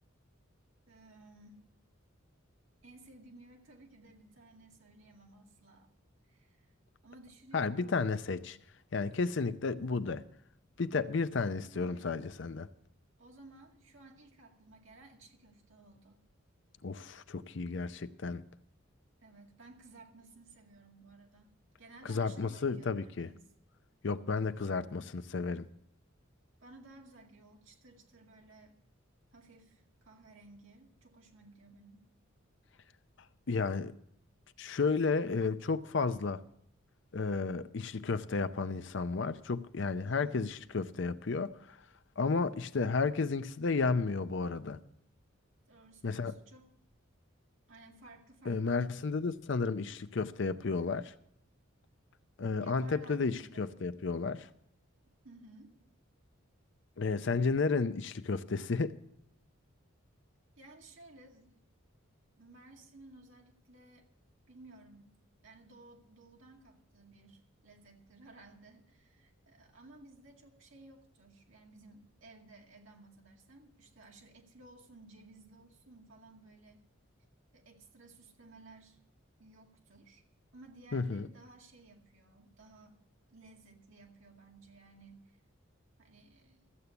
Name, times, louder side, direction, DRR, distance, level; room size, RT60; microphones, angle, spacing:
voice 1, 0.9-1.6 2.8-5.9 6.2-6.7 7.0-8.0 11.7-12.2 13.2-16.2 19.2-21.5 21.8-23.5 24.6-24.7 26.6-28.8 29.3-32.1 40.0-40.5 45.7-46.7 47.7-49.0 52.6-53.7 55.0-55.8 60.6-61.6 62.4-64.1 64.5-65.1 65.4-76.8 77.5-79.0 79.4-80.2 80.5-83.0 83.3-85.4 86.0-86.7, right 2 dB, 70° right, 2.2 m, -57 dB
voice 2, 7.5-8.6 8.9-10.2 10.8-12.7 16.8-18.4 22.1-23.3 24.0-25.7 33.5-33.9 34.6-36.4 37.1-41.8 42.2-44.8 46.0-46.3 48.5-51.1 52.4-54.5 57.0-59.0 80.9-81.3, left 4 dB, 55° left, 0.6 m, -32 dB
14.0 x 8.2 x 6.9 m
head